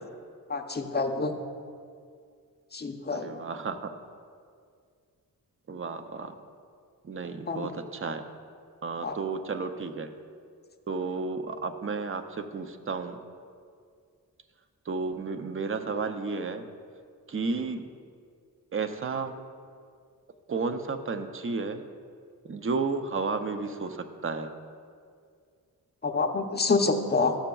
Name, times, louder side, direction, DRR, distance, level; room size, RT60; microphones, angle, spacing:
voice 1, 0.5-1.3 2.7-3.3 7.5-7.7 9.0-9.2 26.0-27.4, left 3 dB, 30° left, 4 dB, 0.6 m, -27 dB
voice 2, 3.1-3.8 5.7-6.3 7.0-8.2 8.8-10.1 10.9-13.2 14.9-16.6 17.3-17.8 18.7-19.3 20.5-21.8 22.4-24.5, right 4 dB, 35° right, 8 dB, 0.5 m, -32 dB
12.5 x 6.8 x 2.3 m, 2.2 s
wide cardioid pair, 95°, 36 cm